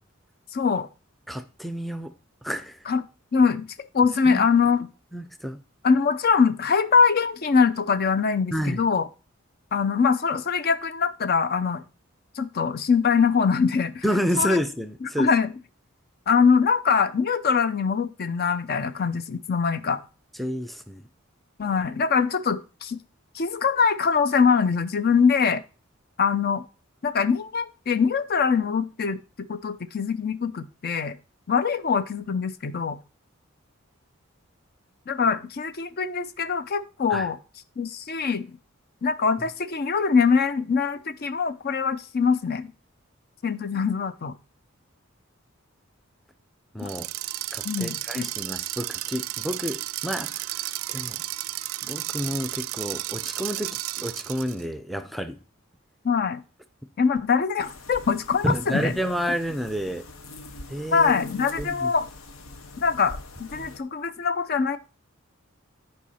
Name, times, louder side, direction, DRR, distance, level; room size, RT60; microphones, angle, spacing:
voice 1, 0.5-0.9 2.9-3.0 3.3-3.7 3.9-4.9 5.8-9.1 9.7-11.8 12.4-14.0 14.4-14.6 15.0-15.5 16.3-20.0 21.6-23.0 23.3-25.6 26.2-26.6 27.0-29.2 29.5-31.1 31.5-33.0 35.1-37.4 37.8-38.4 39.0-42.7 43.4-44.3 46.8-46.9 47.6-48.3 56.0-56.4 57.0-58.9 60.9-62.1 62.8-64.8, left 5 dB, 50° left, 0.5 m, -23 dB
voice 2, 1.3-2.1 2.4-2.8 4.3-4.5 5.1-5.6 8.5-8.8 14.0-15.3 20.4-21.1 37.1-37.3 46.7-47.1 47.5-50.4 50.9-51.2 51.8-55.4 58.4-60.0 60.7-61.1 61.6-61.9, equal, ahead, 0.5 m, -29 dB
sound 1, 46.8-54.6, right 16 dB, 90° right, 0.4 m, -33 dB
sound 2, 57.6-63.8, left 2 dB, 90° left, 0.9 m, -43 dB
10.5 x 4.8 x 4.2 m
head